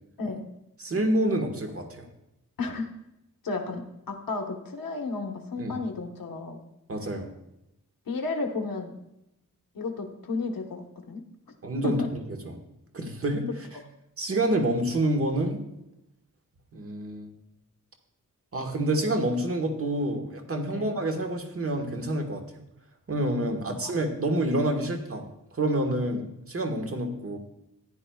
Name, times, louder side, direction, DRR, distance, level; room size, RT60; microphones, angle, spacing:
voice 1, 0.2-0.5 2.6-2.9 3.4-6.6 8.1-8.9 9.7-11.2 11.8-12.1 20.7-20.9 23.7-23.9, left 3 dB, 80° left, 4 dB, 1.3 m, -33 dB
voice 2, 0.8-2.1 5.6-5.7 6.9-7.3 11.6-12.0 12.4-12.5 12.9-13.7 14.2-15.6 16.7-17.3 18.5-22.6 23.1-25.2 25.5-27.4, right 1 dB, 40° right, 3 dB, 1.4 m, -28 dB
14.5 x 10.5 x 2.3 m, 0.86 s
wide cardioid pair, 165°, 34 cm